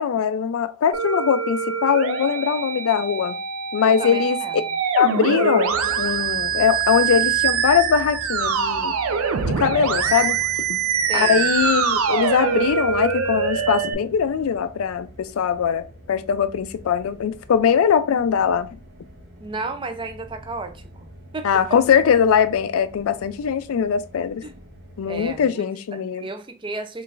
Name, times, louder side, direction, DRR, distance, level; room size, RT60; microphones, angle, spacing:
voice 1, 0.0-3.4 3.7-4.4 5.0-8.9 9.4-10.4 11.1-18.8 21.4-24.4 25.0-26.3, left 7 dB, 80° left, 0.3 m, -21 dB
Musical instrument, 0.9-13.9, right 7 dB, 90° right, 0.5 m, -24 dB
voice 2, 3.9-4.6 11.0-11.5 19.4-21.8 24.4-24.6 25.1-25.6 25.9-27.0, right 3 dB, 25° right, 0.4 m, -33 dB
sound 1, 5.6-25.5, equal, 50° right, 0.8 m, -44 dB
3.8 x 3.1 x 2.4 m
head